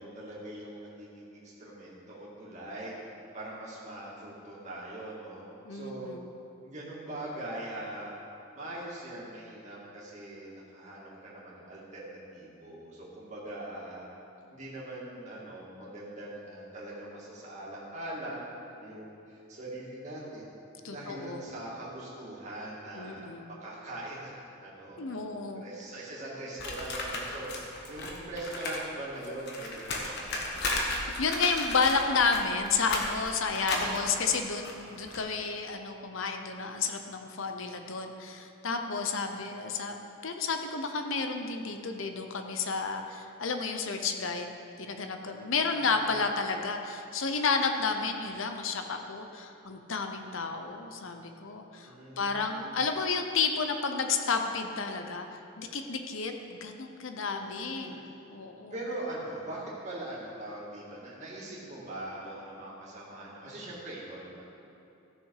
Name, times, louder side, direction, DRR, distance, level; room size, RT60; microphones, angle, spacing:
voice 1, 0.0-3.0 3.3-5.4 5.7-6.1 6.6-8.1 8.5-14.1 14.5-18.5 18.8-20.5 20.9-27.5 27.9-31.0 33.6-33.9 45.6-46.1 51.8-52.8 57.3-57.9 58.7-64.4, right 1 dB, 35° right, -6 dB, 2.3 m, -42 dB
voice 2, 5.6-6.3 20.8-21.4 22.9-23.5 25.0-25.6 31.2-40.0 40.2-44.5 44.8-55.3 55.6-57.9 58.3-58.7, left 4 dB, 65° left, 5 dB, 0.8 m, -31 dB
sound 1, 26.6-28.8 29.1-35.2, left 2 dB, 50° left, 1.2 m, -35 dB
14.5 x 6.6 x 4.8 m, 2.8 s
head